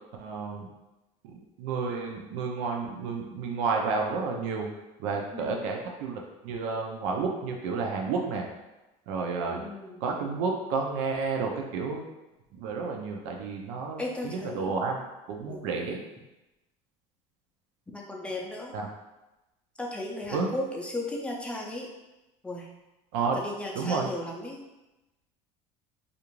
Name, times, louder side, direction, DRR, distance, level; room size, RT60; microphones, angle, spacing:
voice 1, 0.2-0.7 1.2-4.7 5.0-8.5 9.1-9.6 10.0-12.0 12.5-16.0 18.7-18.9 20.3-20.5 23.1-23.4 23.7-24.1, right 4 dB, 80° right, 1 dB, 0.6 m, -31 dB
voice 2, 5.3-5.7 9.5-10.0 14.0-14.8 15.5-15.7 17.9-18.7 19.8-21.9 22.4-22.7 23.3-24.6, left 1 dB, 5° left, -2 dB, 0.5 m, -36 dB
2.5 x 2.4 x 3.0 m, 1.0 s
supercardioid pair, 120°, 16 cm